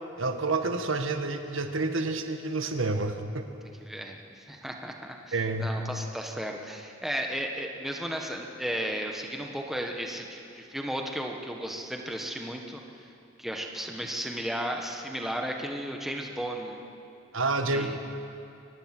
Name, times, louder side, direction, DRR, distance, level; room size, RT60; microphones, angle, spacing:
voice 1, 0.2-3.5 5.3-5.8 17.3-18.0, right 3 dB, 85° right, 6 dB, 1.6 m, -29 dB
voice 2, 3.8-13.1 13.4-16.8 17.7-18.0, equal, ahead, 1 dB, 1.4 m, -34 dB
24.0 x 19.0 x 6.1 m, 2.6 s
head